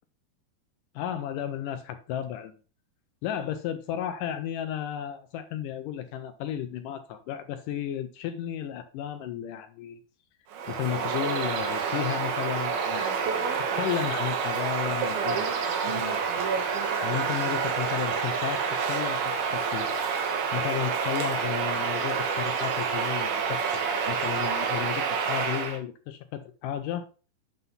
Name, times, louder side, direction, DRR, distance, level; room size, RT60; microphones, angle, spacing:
voice 1, 1.0-2.5 3.2-10.0 10.7-13.4 13.7-16.4 16.8-20.0 20.5-27.1, left 10 dB, 80° left, 9 dB, 1.9 m, -33 dB
Bird vocalization bird call bird song, 10.5-25.8, right 6 dB, 75° right, 3.2 m, -28 dB
9.2 x 3.9 x 5.4 m, 0.36 s
omnidirectional pair, 4.4 m